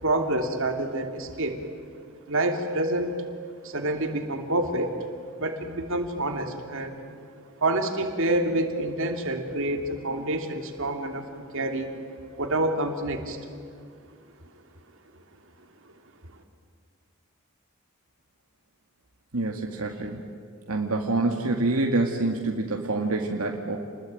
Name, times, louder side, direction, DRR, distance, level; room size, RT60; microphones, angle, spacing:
voice 1, 0.0-1.6 2.3-3.1 3.6-4.9 5.4-6.9 7.6-11.9 12.4-13.4, right 1 dB, 65° right, 4 dB, 3.0 m, -27 dB
voice 2, 19.3-20.2 20.7-23.8, right 2 dB, 85° right, 1 dB, 2.1 m, -26 dB
29.0 x 21.0 x 9.2 m, 2.3 s
head